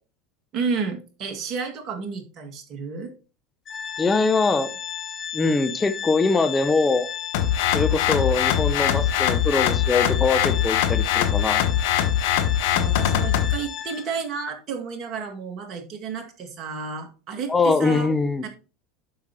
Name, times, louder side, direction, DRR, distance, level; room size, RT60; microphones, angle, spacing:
voice 1, 0.5-3.1 12.7-18.1 18.4-18.5, right 5 dB, 45° right, 3 dB, 2.3 m, -31 dB
Organ, 3.7-14.3, left 9 dB, 35° left, 1.3 m, -34 dB
voice 2, 4.0-4.7 5.3-7.1 7.7-11.6 17.5-18.4, left 3 dB, 15° left, 10 dB, 0.9 m, -22 dB
sound 1, 7.3-13.5, left 10 dB, 65° left, 1.2 m, -22 dB
11.5 x 5.8 x 3.1 m, 0.34 s
figure-of-eight pair, 80°, 0 cm